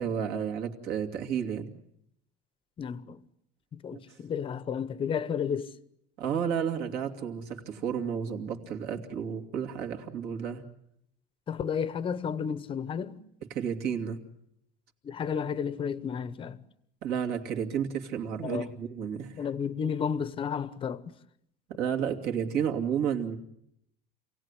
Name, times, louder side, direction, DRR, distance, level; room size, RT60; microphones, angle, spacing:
voice 1, 0.0-1.7 3.9-4.0 6.2-10.6 13.5-14.2 17.0-19.4 21.7-23.4, right 8 dB, 55° right, 2.7 m, -31 dB
voice 2, 2.8-3.2 3.7-5.7 11.5-13.2 15.0-16.6 18.4-18.7 19.3-21.0, left 7 dB, 25° left, 1.0 m, -32 dB
27.5 x 17.5 x 9.9 m
cardioid pair, 160°, 19 cm